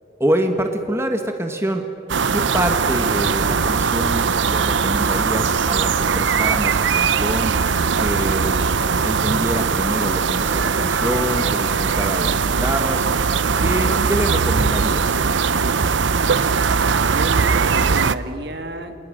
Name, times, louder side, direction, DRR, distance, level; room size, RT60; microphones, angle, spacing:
voice 1, 0.2-1.9 2.3-8.6 9.0-13.1 13.6-15.2, right 1 dB, 15° right, 5 dB, 1.4 m, -26 dB
sound 1, 2.1-18.2, right 5 dB, 85° right, 0.7 m, -20 dB
voice 2, 17.0-19.0, right 1 dB, 60° right, 6 dB, 2.2 m, -32 dB
30.0 x 27.5 x 6.5 m, 2.9 s
head